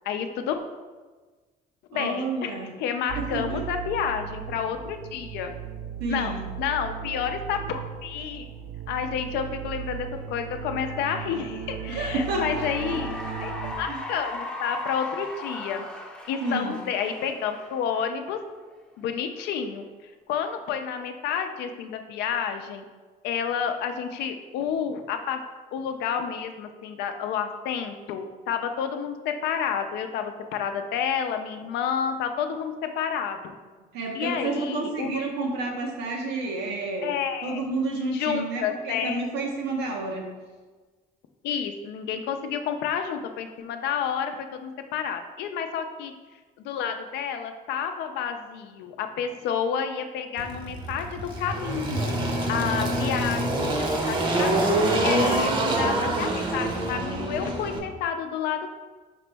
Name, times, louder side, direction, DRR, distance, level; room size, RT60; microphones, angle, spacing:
voice 1, 0.0-0.6 1.9-5.5 6.1-8.5 8.9-13.5 13.8-15.8 16.3-18.4 19.0-19.8 20.3-22.8 23.2-25.4 25.7-33.6 34.1-35.2 37.0-37.6 38.1-39.2 41.4-46.1 46.6-52.2 52.5-58.7, left 7 dB, 80° left, 7 dB, 0.5 m, -30 dB
voice 2, 1.9-2.7 3.2-3.6 6.0-6.5 11.9-13.0 13.3-13.4 13.9-14.0 16.4-16.8 33.9-37.1 37.4-40.3 55.1-55.8, right 3 dB, 90° right, 0 dB, 1.0 m, -30 dB
sound 1, 3.1-13.7, right 9 dB, 70° right, 0.6 m, -37 dB
Cheering / Applause, 11.7-18.4, left 2 dB, 5° left, 0.6 m, -38 dB
Engine, 50.4-57.8, right 1 dB, 30° right, 0.7 m, -26 dB
5.1 x 2.9 x 3.4 m, 1.3 s
cardioid pair, 110°, 17 cm